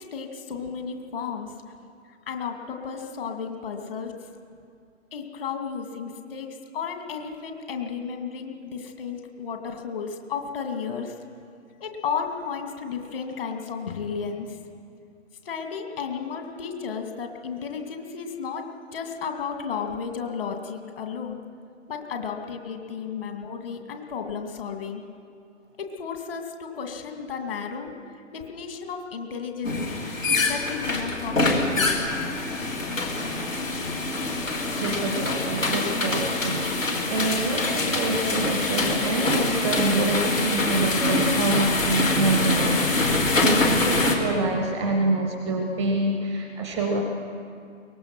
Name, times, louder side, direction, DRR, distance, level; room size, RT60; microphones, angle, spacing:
voice 1, 0.0-1.5 2.3-4.1 5.1-6.5 6.7-11.1 11.8-14.6 15.4-18.6 18.9-21.4 21.9-25.0 25.8-27.9 28.3-30.0 30.5-32.1, left 6 dB, 45° left, 4 dB, 2.4 m, -33 dB
sound 1, 29.6-44.2, left 2 dB, 80° left, 3.3 m, -25 dB
voice 2, 34.8-47.0, right 2 dB, ahead, 3 dB, 0.5 m, -26 dB
23.0 x 19.0 x 6.1 m, 2.4 s
figure-of-eight pair, 135°, 39 cm